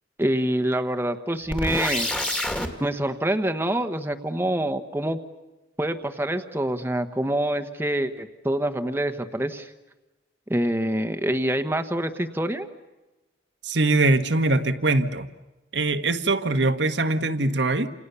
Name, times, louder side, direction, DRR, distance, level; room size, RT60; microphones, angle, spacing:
voice 1, 0.2-2.1 2.8-5.2 5.8-9.7 10.5-12.7, right 1 dB, 10° right, 7 dB, 1.2 m, -26 dB
sound 1, 1.5-2.7, left 1 dB, 5° left, 2.0 m, -27 dB
voice 2, 13.6-15.3 15.7-17.9, right 2 dB, 70° right, 9 dB, 1.5 m, -22 dB
28.5 x 28.5 x 6.9 m, 1.1 s
head